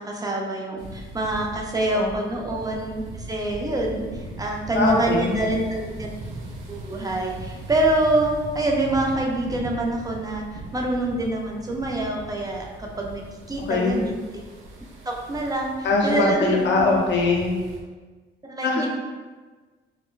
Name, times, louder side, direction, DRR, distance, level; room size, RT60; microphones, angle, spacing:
voice 1, 0.0-6.1 6.7-14.2 15.1-15.7 16.0-16.9 18.5-18.9, right 1 dB, 20° right, 0 dB, 0.6 m, -26 dB
sound 1, 0.8-17.8, right 2 dB, 90° right, 0.6 m, -39 dB
voice 2, 4.8-5.4 13.7-14.0 15.8-17.6 18.6-18.9, left 3 dB, 65° left, -1 dB, 0.7 m, -21 dB
4.1 x 2.1 x 2.4 m, 1.3 s
cardioid pair, 90°, 20 cm